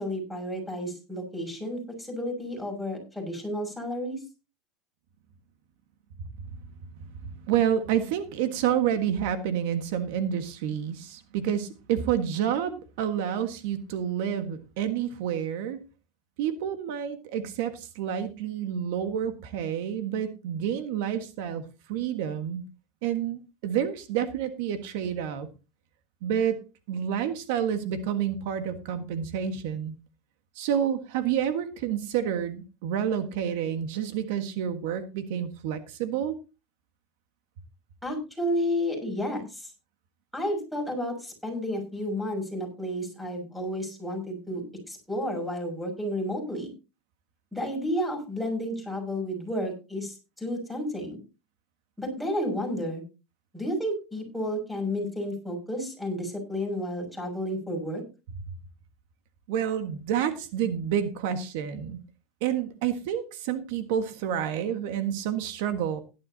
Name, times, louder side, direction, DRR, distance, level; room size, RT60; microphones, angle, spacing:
voice 1, 0.0-4.2 38.0-39.7 40.3-44.6 44.9-46.7 47.5-51.2 52.0-53.0 53.5-58.0, equal, ahead, 3 dB, 6.3 m, -31 dB
voice 2, 7.2-15.8 16.4-22.6 23.0-25.5 26.2-26.6 26.9-30.0 30.5-36.3 59.5-62.0 62.4-66.0, right 9 dB, 75° right, 9 dB, 1.5 m, -29 dB
16.5 x 11.5 x 2.8 m, 0.30 s
supercardioid pair, 130°, 0 cm